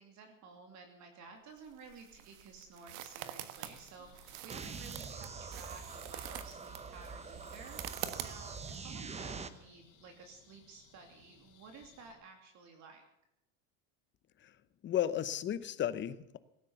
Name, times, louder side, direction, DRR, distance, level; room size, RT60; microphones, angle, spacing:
voice 1, 0.0-7.8 8.2-13.0, right 4 dB, 45° right, 4 dB, 2.7 m, -54 dB
sound 1, 1.6-8.8, right 12 dB, 70° right, 1.6 m, -46 dB
sound 2, 3.5-12.1, left 7 dB, 45° left, 3.6 m, -63 dB
sound 3, 4.5-9.5, right 5 dB, 15° right, 1.0 m, -45 dB
voice 2, 14.8-16.4, left 11 dB, 30° left, 14 dB, 0.9 m, -34 dB
18.0 x 9.8 x 7.0 m, 0.84 s
supercardioid pair, 145°, 39 cm